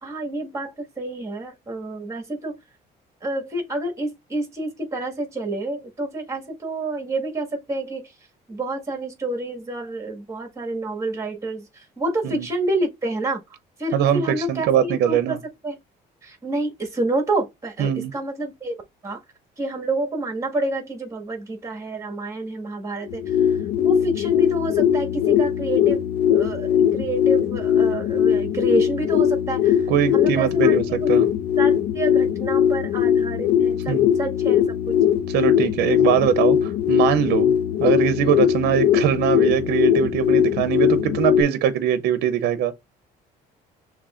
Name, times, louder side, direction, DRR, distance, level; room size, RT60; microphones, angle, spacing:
voice 1, 0.0-2.6 3.2-8.1 8.5-13.4 13.8-15.4 15.6-15.8 16.2-18.8 19.0-19.2 19.6-31.1 31.6-35.0, right 2 dB, 20° right, 1.7 m, -28 dB
voice 2, 14.5-15.4 17.8-18.1 29.9-31.3 33.9-34.1 35.3-37.5 37.8-42.7, right 9 dB, 75° right, 0.6 m, -22 dB
sound 1, 23.0-41.4, left 9 dB, 80° left, 0.6 m, -20 dB
6.5 x 3.0 x 2.4 m
cardioid pair, 110°, 17 cm